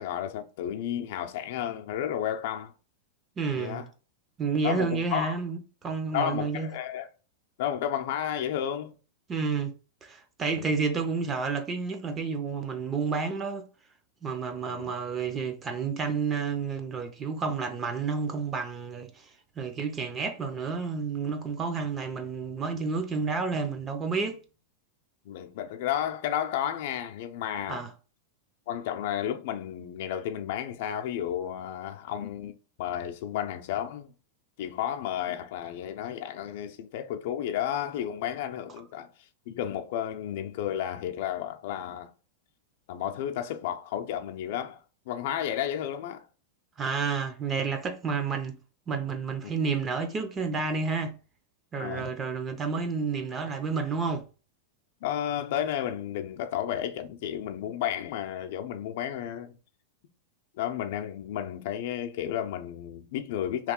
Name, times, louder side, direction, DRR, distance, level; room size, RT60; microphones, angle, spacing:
voice 1, 0.0-2.7 3.5-3.9 4.6-5.3 6.1-7.1 7.6-8.9 10.5-10.7 14.7-14.9 25.3-27.9 28.7-34.1 34.6-39.1 39.5-42.1 42.9-44.8 45.1-46.2 49.4-49.5 51.7-52.1 55.0-59.5 60.6-63.7, left 10 dB, 60° left, 0.5 m, -32 dB
voice 2, 3.4-3.8 4.4-6.7 9.3-9.7 10.0-13.7 14.2-19.3 19.6-24.4 27.7-27.9 46.8-48.5 48.9-51.1 51.7-54.2, right 5 dB, 20° right, 0.5 m, -30 dB
3.0 x 2.3 x 3.6 m
hypercardioid pair, 130°, 0 cm